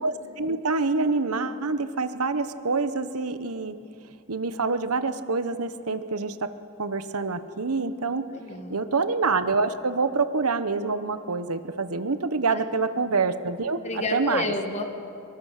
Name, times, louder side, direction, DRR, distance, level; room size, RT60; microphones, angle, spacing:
voice 1, 0.0-3.7 4.3-6.5 6.8-8.2 8.7-14.5, right 4 dB, 80° right, 11 dB, 1.1 m, -26 dB
voice 2, 8.3-8.8 12.5-12.6 13.8-14.8, left 2 dB, 30° left, 5 dB, 1.9 m, -30 dB
24.0 x 23.0 x 6.6 m, 2.6 s
head